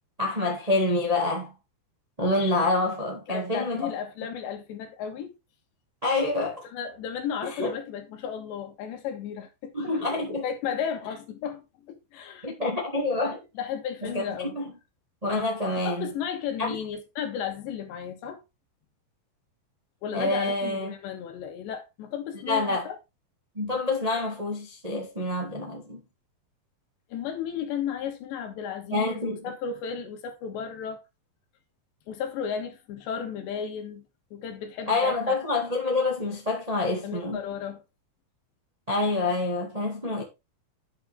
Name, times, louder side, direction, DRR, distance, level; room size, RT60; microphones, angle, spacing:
voice 1, 0.2-1.5 2.2-3.9 6.0-6.7 7.6-7.7 9.7-10.5 12.4-13.4 14.0-14.6 15.2-16.1 16.6-16.7 20.1-20.9 22.5-22.9 23.5-26.0 28.9-29.5 34.9-37.4 38.9-40.2, left 2 dB, 35° right, 0.6 m, -27 dB
voice 2, 3.3-5.3 6.7-10.0 10.4-12.5 13.6-14.5 15.8-18.4 20.0-23.0 27.1-31.0 32.1-34.0 34.3-35.4 37.0-37.8, left 8 dB, 75° left, 3.7 m, -34 dB
10.0 x 6.8 x 3.5 m
omnidirectional pair, 5.2 m